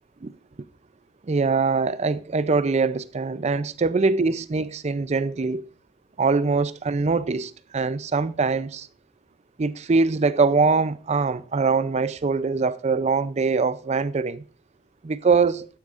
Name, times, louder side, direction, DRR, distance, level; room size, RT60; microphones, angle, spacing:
voice 1, 1.2-5.6 6.2-8.9 9.6-14.4 15.0-15.7, right 4 dB, 35° right, 0.4 m, -23 dB
12.0 x 10.5 x 2.5 m
head